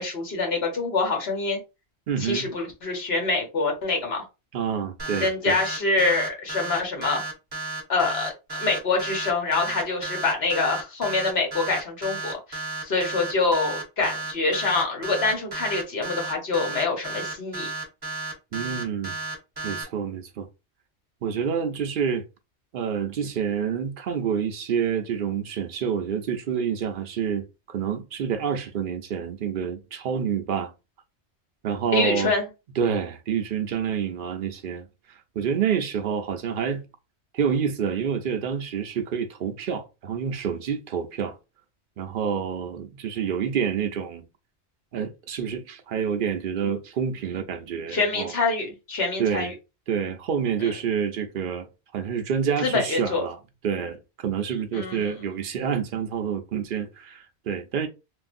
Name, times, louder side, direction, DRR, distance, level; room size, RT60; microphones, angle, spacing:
voice 1, 0.0-1.6 2.2-4.2 5.2-7.2 7.9-17.7 31.9-32.5 47.9-49.5 50.6-50.7 52.6-53.2 54.7-55.1, left 3 dB, 65° left, 1.2 m, -25 dB
voice 2, 2.1-2.5 4.5-5.6 18.5-19.2 19.6-20.5 21.2-22.2 22.7-30.7 31.6-32.3 32.8-36.8 37.3-41.4 42.0-44.2 44.9-48.3 49.2-49.5 49.9-51.7 51.9-53.4 53.6-57.9, right 7 dB, 60° right, 0.6 m, -28 dB
sound 1, 5.0-19.8, right 3 dB, 25° right, 0.8 m, -33 dB
3.1 x 2.6 x 2.5 m
omnidirectional pair, 1.2 m